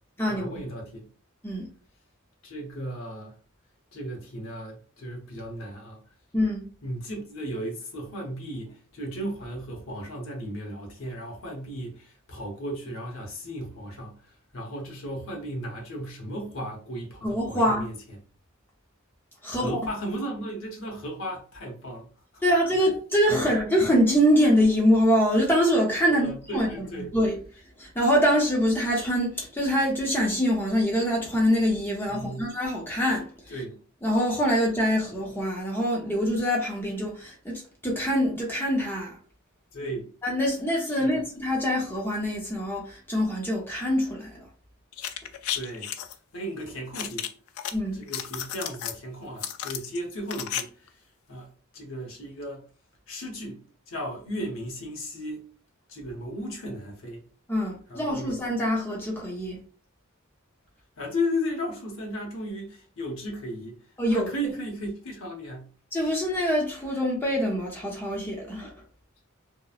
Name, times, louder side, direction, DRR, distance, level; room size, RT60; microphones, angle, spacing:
voice 1, 0.3-1.1 2.4-3.4 3.9-6.0 6.8-18.2 19.5-22.1 22.3-22.4 26.0-27.1 32.1-32.5 33.5-33.8 39.7-40.1 40.9-41.2 45.5-47.3 47.9-52.6 53.1-55.5 55.9-57.2 57.9-58.4 61.0-65.7, equal, 65° left, 0.8 m, -35 dB
voice 2, 6.3-6.7 17.2-17.9 19.4-19.8 22.4-27.4 27.8-33.3 34.0-39.2 40.2-44.4 47.7-48.0 57.5-59.6 64.0-64.3 65.9-68.7, equal, 10° left, 0.6 m, -24 dB
sound 1, 44.9-46.1 46.9-47.7 48.0-49.0 49.4-50.6 50.9-51.0, left 10 dB, 85° left, 0.3 m, -33 dB
2.8 x 2.1 x 2.3 m
head